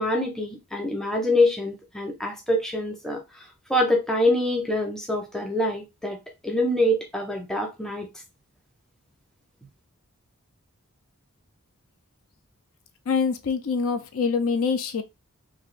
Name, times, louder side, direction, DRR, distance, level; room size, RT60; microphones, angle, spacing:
voice 1, 0.0-3.2 3.7-6.2 6.4-8.1, left 1 dB, ahead, 0.6 m, -25 dB
voice 2, 13.1-15.0, left 5 dB, 70° left, 0.4 m, -25 dB
3.3 x 2.6 x 2.4 m
head